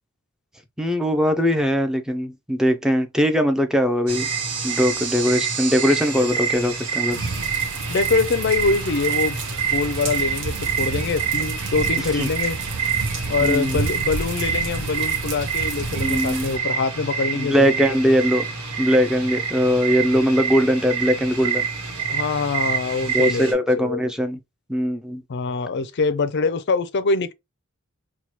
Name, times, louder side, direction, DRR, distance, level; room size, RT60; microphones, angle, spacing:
voice 1, 0.8-4.3 4.6-7.3 12.2-12.3 13.4-13.8 15.9-16.5 17.3-18.4 18.8-21.7 23.1-24.4 24.7-25.2, equal, 5° right, 0.5 m, -20 dB
sound 1, 4.1-23.5, right 6 dB, 85° right, 1.1 m, -27 dB
sound 2, 7.1-16.6, right 4 dB, 60° right, 0.7 m, -30 dB
voice 2, 7.9-9.4 9.7-12.6 13.3-17.8 22.1-24.1 25.3-27.3, left 4 dB, 50° left, 0.4 m, -24 dB
4.5 x 2.2 x 2.8 m
head